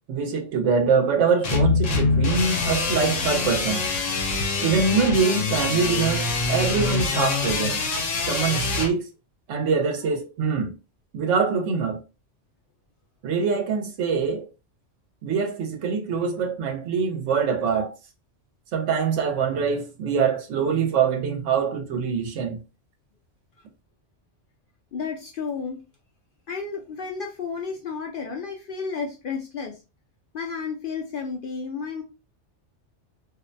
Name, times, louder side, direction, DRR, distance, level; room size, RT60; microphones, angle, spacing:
voice 1, 0.1-3.9 4.6-7.8 8.3-9.0 9.5-10.7 11.1-12.0 13.2-14.5 15.2-17.9 18.7-22.6, right 5 dB, 80° right, 1.0 m, -24 dB
sound 1, 1.4-8.9, left 4 dB, 80° left, 1.0 m, -24 dB
voice 2, 24.9-25.8 26.5-29.8 30.3-32.0, left 5 dB, 60° left, 0.6 m, -32 dB
2.5 x 2.1 x 2.5 m
omnidirectional pair, 1.3 m